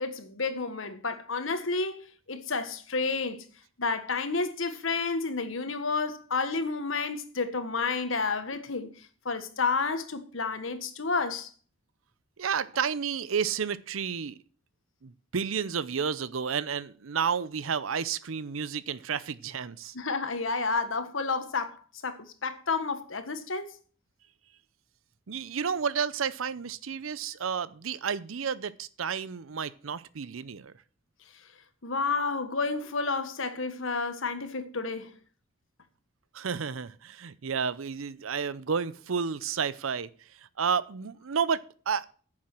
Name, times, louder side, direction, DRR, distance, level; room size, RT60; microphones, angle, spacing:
voice 1, 0.0-3.4 3.8-11.5 19.9-23.7 31.8-35.1, left 4 dB, 80° left, 1.4 m, -30 dB
voice 2, 12.4-14.4 15.0-19.9 25.3-30.7 36.3-42.1, right 6 dB, 90° right, 0.6 m, -31 dB
9.8 x 7.3 x 6.0 m
head